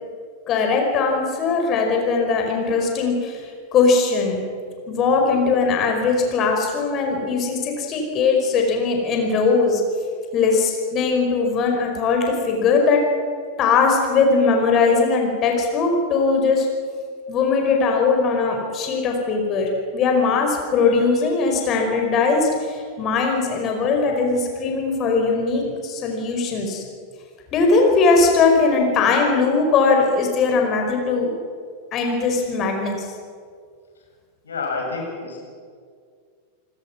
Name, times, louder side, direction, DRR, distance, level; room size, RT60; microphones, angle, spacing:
voice 1, 0.5-4.4 4.9-9.8 10.3-13.0 13.6-16.7 17.3-26.8 27.5-31.3 31.9-33.1, left 4 dB, 30° left, 2 dB, 5.0 m, -20 dB
voice 2, 34.4-35.4, left 4 dB, 70° left, -1 dB, 7.1 m, -28 dB
28.5 x 20.0 x 6.1 m, 2.1 s
figure-of-eight pair, 90°, 0 cm